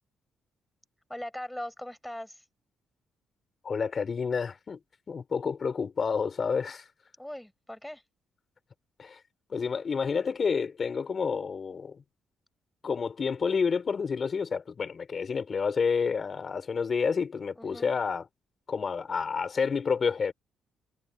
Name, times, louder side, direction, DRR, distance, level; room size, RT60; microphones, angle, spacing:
voice 1, 1.1-2.4 7.2-8.0 17.5-17.9, left 1 dB, 5° left, 4.8 m, -40 dB
voice 2, 3.6-4.8 5.1-6.8 9.0-9.2 9.5-12.0 12.8-18.3 18.7-20.3, left 5 dB, 40° left, 4.1 m, -29 dB
cardioid pair, 90°, 0 cm